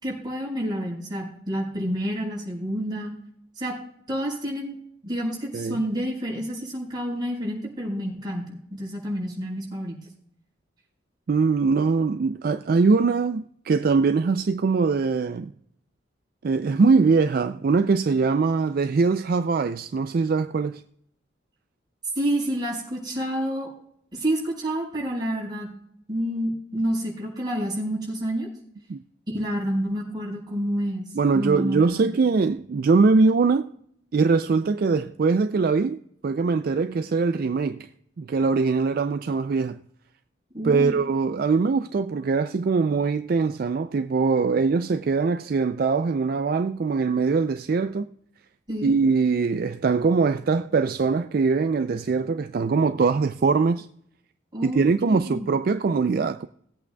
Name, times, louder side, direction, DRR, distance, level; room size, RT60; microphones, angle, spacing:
voice 1, 0.0-3.1 3.6-3.7 4.1-4.8 5.0-10.0 22.1-23.7 24.1-25.7 26.1-28.5 29.3-31.0 31.3-32.1 40.5-40.9 48.7-48.9 54.5-55.5, equal, 25° right, 4.7 m, -29 dB
voice 2, 11.3-15.5 16.4-20.8 28.9-29.0 31.1-33.7 34.1-37.9 38.2-39.8 40.6-48.1 48.8-53.9 54.6-56.5, right 4 dB, 50° right, 0.3 m, -22 dB
19.5 x 8.4 x 2.2 m
head